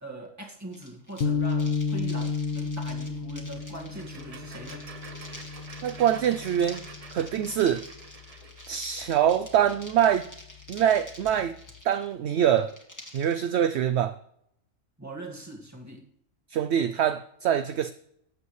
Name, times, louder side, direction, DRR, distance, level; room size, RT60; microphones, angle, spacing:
voice 1, 0.0-4.9 15.0-16.1, right 1 dB, 15° right, 1.9 m, -41 dB
sound 1, 0.7-13.4, left 1 dB, 15° left, 1.9 m, -48 dB
sound 2, 1.2-7.6, left 4 dB, 60° left, 0.9 m, -32 dB
sound 3, 3.5-9.2, right 4 dB, 35° right, 0.8 m, -48 dB
voice 2, 5.8-6.9 7.1-7.8 8.7-10.3 10.7-11.6 11.8-12.7 13.1-14.2 16.5-17.9, right 9 dB, 65° right, 0.8 m, -24 dB
19.0 x 8.1 x 3.2 m
omnidirectional pair, 1.3 m